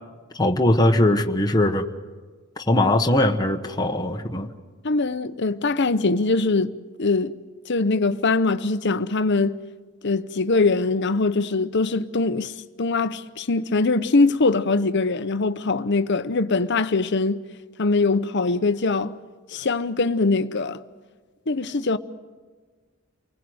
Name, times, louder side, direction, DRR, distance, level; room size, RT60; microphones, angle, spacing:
voice 1, 0.3-1.9 2.6-4.5, left 1 dB, 20° left, 1.2 m, -20 dB
voice 2, 4.8-6.7 7.0-7.3 7.7-9.6 10.0-12.5 12.8-17.4 17.8-19.1 19.5-20.8 21.5-22.0, left 3 dB, 55° left, 0.9 m, -22 dB
29.5 x 20.5 x 8.0 m
head